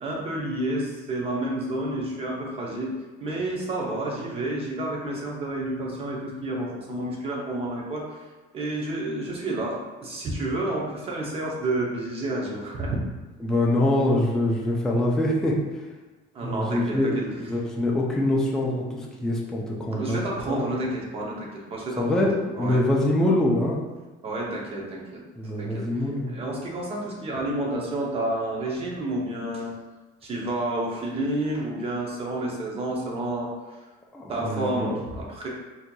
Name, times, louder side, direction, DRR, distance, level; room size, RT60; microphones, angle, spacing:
voice 1, 0.0-8.2 8.5-13.0 16.3-17.2 19.9-22.3 22.5-22.9 24.2-25.2 25.6-26.0 26.3-29.7 30.2-33.5 34.3-35.5, right 1 dB, 30° right, -2 dB, 0.7 m, -30 dB
voice 2, 13.4-15.6 16.4-20.2 20.5-20.6 22.0-23.8 25.4-26.3 34.1-34.9, left 1 dB, 5° left, -3 dB, 0.4 m, -24 dB
4.3 x 2.7 x 2.2 m, 1.2 s
cardioid pair, 160°, 19 cm